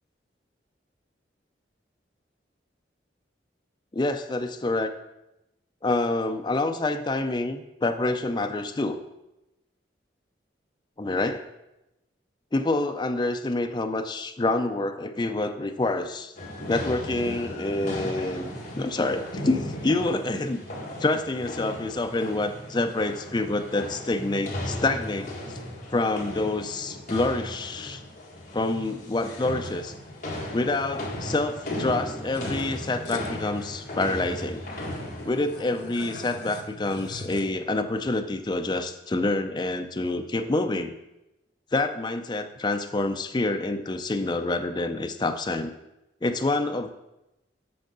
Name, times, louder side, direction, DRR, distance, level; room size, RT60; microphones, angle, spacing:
voice 1, 3.9-4.9 5.8-9.0 11.0-11.5 12.5-16.3 16.7-20.6 21.0-25.3 25.9-28.0 28.5-29.9 30.5-34.7 35.2-40.9 41.7-45.7 46.2-46.9, left 2 dB, 25° left, 6 dB, 0.4 m, -27 dB
sound 1, 16.4-35.3, left 1 dB, 45° left, 1.8 m, -36 dB
sound 2, 32.3-33.3 34.0-34.1 34.3-37.4, left 2 dB, 75° left, 1.0 m, -41 dB
7.8 x 6.3 x 3.8 m, 0.93 s
head